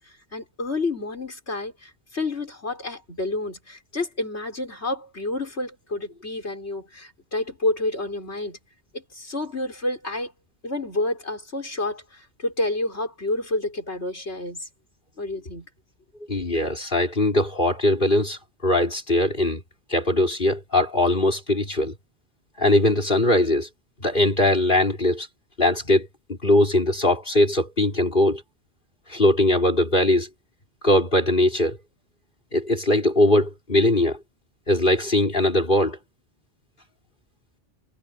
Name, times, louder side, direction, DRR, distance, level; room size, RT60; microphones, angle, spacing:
voice 1, 0.0-8.6 8.9-10.3 10.6-14.7 15.2-15.7, left 2 dB, 65° left, 5.8 m, -29 dB
voice 2, 16.3-19.6 19.9-21.9 22.6-23.7 24.0-25.3 25.6-28.4 29.1-30.3 30.8-31.8 32.5-34.2 34.7-36.0, left 1 dB, 45° left, 4.6 m, -21 dB
omnidirectional pair, 1.2 m